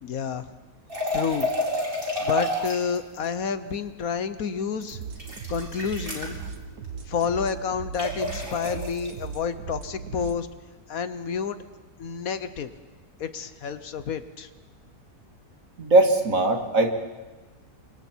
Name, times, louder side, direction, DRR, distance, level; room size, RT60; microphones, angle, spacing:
voice 1, 0.0-0.5 1.1-1.5 2.2-5.1 5.5-6.4 7.1-10.5 10.9-11.6 12.0-12.7 13.2-14.5, left 6 dB, 65° left, 12 dB, 1.3 m, -29 dB
sound 1, 0.9-3.0 4.8-6.4 8.0-9.1, left 1 dB, 35° right, 4.7 m, -29 dB
sound 2, 4.9-10.4, right 6 dB, 80° right, 1.7 m, -38 dB
voice 2, 15.8-16.9, right 2 dB, 55° right, 4 dB, 2.4 m, -19 dB
29.0 x 25.5 x 4.5 m, 1.2 s
omnidirectional pair, 1.6 m